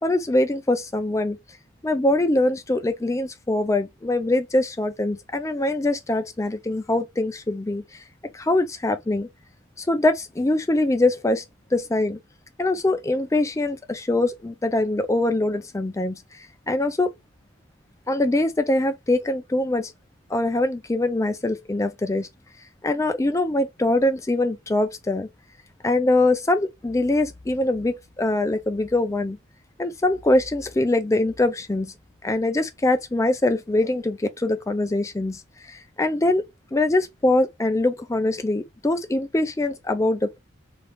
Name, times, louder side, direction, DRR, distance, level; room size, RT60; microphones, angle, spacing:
voice 1, 0.0-1.4 1.8-8.0 8.3-9.3 9.8-11.4 11.7-12.2 12.6-16.2 16.7-17.1 18.1-19.9 20.3-22.3 22.8-25.3 25.8-29.4 29.8-31.9 32.2-36.4 36.7-40.4, left 2 dB, 15° left, 0.4 m, -23 dB
3.0 x 2.4 x 3.2 m
head